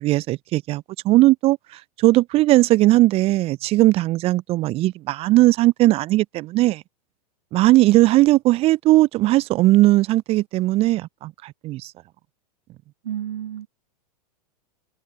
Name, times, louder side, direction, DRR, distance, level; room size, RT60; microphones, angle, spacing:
voice 1, 0.0-1.6 2.0-6.8 7.5-11.9, right 17 dB, 30° right, 0.6 m, -18 dB
voice 2, 13.0-13.7, right 10 dB, 65° right, 1.4 m, -30 dB
figure-of-eight pair, 95°, 21 cm